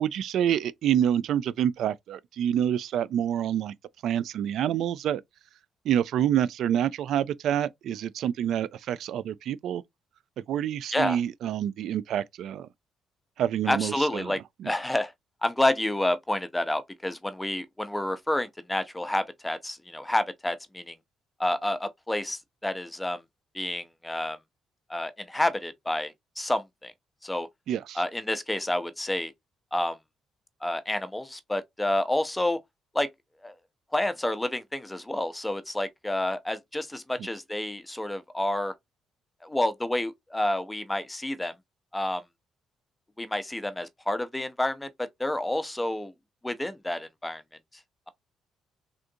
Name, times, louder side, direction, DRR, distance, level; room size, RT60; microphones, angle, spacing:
voice 1, 0.0-3.7 4.0-5.2 5.8-9.8 10.5-12.7 13.4-14.7 27.7-28.0, right 10 dB, 75° right, 0.3 m, -27 dB
voice 2, 13.7-14.4 14.6-15.1 15.4-21.0 21.4-23.2 23.5-24.4 24.9-26.9 27.2-27.5 28.0-29.3 29.7-30.0 30.6-32.6 32.9-33.1 33.4-33.5 33.9-38.7 39.4-41.5 41.9-42.2 43.2-46.1 46.4-47.4, left 1 dB, 10° left, 0.6 m, -29 dB
3.6 x 2.5 x 2.6 m
cardioid pair, 90°, 0 cm